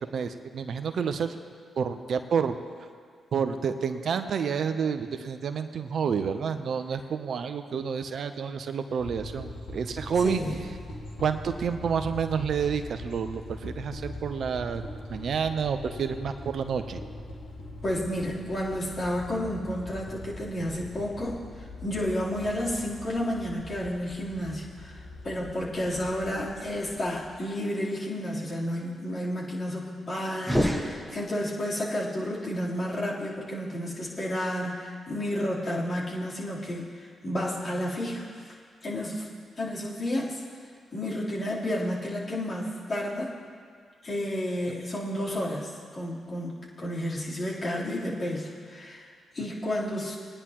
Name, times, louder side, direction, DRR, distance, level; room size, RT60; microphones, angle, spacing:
voice 1, 0.1-1.4 1.8-2.6 3.3-10.4 11.2-14.8 15.1-17.0, right 6 dB, 65° right, 9 dB, 0.7 m, -29 dB
sound 1, 9.0-27.5, left 2 dB, 85° left, 1.7 m, -42 dB
voice 2, 10.2-10.6 17.8-38.5 38.8-39.3 39.6-40.4 40.9-43.3 44.0-50.2, left 1 dB, 45° left, -7 dB, 3.6 m, -31 dB
sound 2, 30.4-31.7, equal, ahead, 1.4 m, -28 dB
20.5 x 10.0 x 3.0 m, 2.1 s
hypercardioid pair, 40°, 0 cm